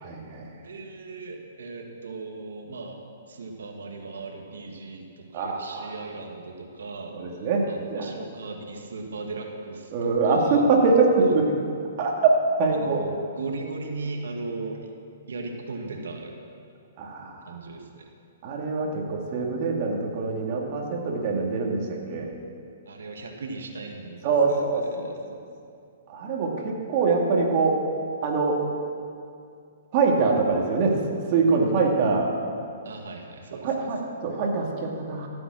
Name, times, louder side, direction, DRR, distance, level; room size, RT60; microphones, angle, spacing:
voice 1, 0.0-0.6 5.3-5.9 7.1-8.1 9.9-11.5 12.0-12.3 12.6-13.1 17.0-17.6 18.4-22.3 24.2-25.4 26.1-27.8 28.2-28.6 29.9-32.3 33.6-35.3, right 4 dB, 45° right, -1 dB, 2.5 m, -24 dB
voice 2, 0.6-3.0 3.3-10.6 11.2-11.4 12.7-14.9 15.3-16.3 17.5-18.1 22.9-24.6 32.8-33.9, right 3 dB, 80° right, 2 dB, 1.8 m, -37 dB
16.0 x 7.8 x 6.2 m, 2.4 s
hypercardioid pair, 135°, 0 cm